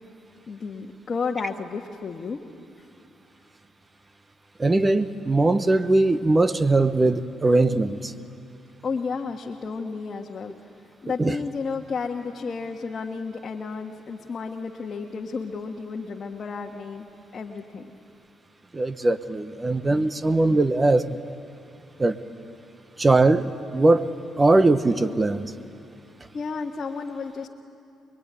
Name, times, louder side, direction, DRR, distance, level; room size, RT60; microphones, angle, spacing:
voice 1, 0.5-2.4 8.8-10.5 11.0-17.1 17.3-17.9 26.3-27.5, left 4 dB, 45° left, 1 dB, 1.5 m, -32 dB
voice 2, 4.6-8.1 11.2-11.4 18.7-21.1 22.0-22.2 23.0-25.5, right 2 dB, 25° right, 12 dB, 1.0 m, -20 dB
26.0 x 22.5 x 9.8 m, 2.6 s
cardioid pair, 90°, 0 cm